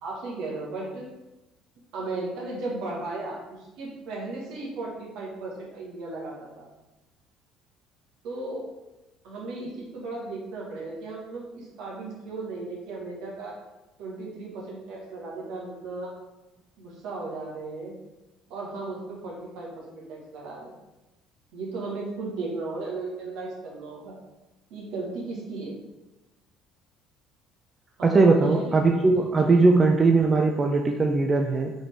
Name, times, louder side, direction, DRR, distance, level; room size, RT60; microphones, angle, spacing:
voice 1, 0.0-1.1 1.9-6.7 8.2-8.6 9.2-13.6 14.0-16.1 16.8-17.9 18.5-20.7 21.5-24.1 24.7-25.7 28.0-28.7, right 3 dB, 70° right, -3 dB, 1.3 m, -35 dB
voice 2, 28.1-31.7, right 3 dB, 30° right, 3 dB, 0.4 m, -20 dB
3.9 x 3.4 x 3.3 m, 1.0 s
hypercardioid pair, 70°, 0 cm